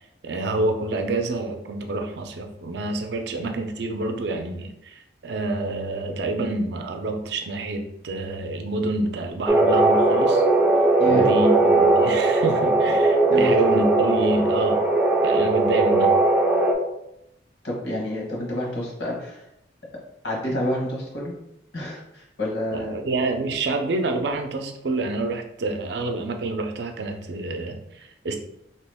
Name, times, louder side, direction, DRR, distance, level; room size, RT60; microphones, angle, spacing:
voice 1, 0.2-10.4 11.0-14.8 15.2-16.1 22.7-28.4, right 2 dB, 70° right, 5 dB, 0.5 m, -27 dB
sound 1, 9.5-16.7, right 2 dB, 10° right, 0.3 m, -19 dB
voice 2, 17.6-19.4 20.2-21.3 21.7-23.0, equal, 75° left, -2 dB, 1.3 m, -28 dB
2.9 x 2.9 x 3.4 m, 0.83 s
head